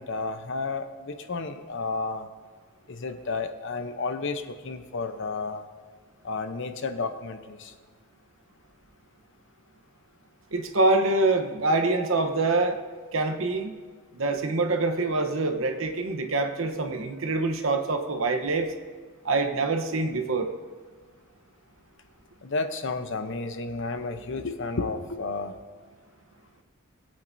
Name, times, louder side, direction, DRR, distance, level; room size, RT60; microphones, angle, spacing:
voice 1, 0.0-2.3 2.9-5.6 6.2-7.7 22.4-25.5, left 3 dB, 60° left, 8 dB, 0.8 m, -32 dB
voice 2, 10.5-12.8 13.1-13.8 14.1-18.7 19.2-20.5, right 3 dB, 65° right, 6 dB, 1.0 m, -25 dB
19.5 x 8.6 x 2.7 m, 1.5 s
head